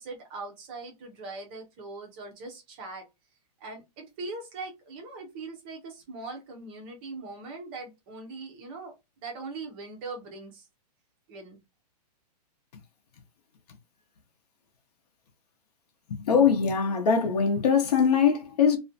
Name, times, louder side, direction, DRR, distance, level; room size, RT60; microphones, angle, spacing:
voice 1, 0.0-3.0 3.6-8.9 9.2-10.7 11.3-11.6, right 3 dB, 15° right, 0.4 m, -41 dB
voice 2, 16.2-18.8, left 6 dB, 70° left, 0.7 m, -22 dB
2.4 x 2.1 x 2.5 m
hypercardioid pair, 175°, 21 cm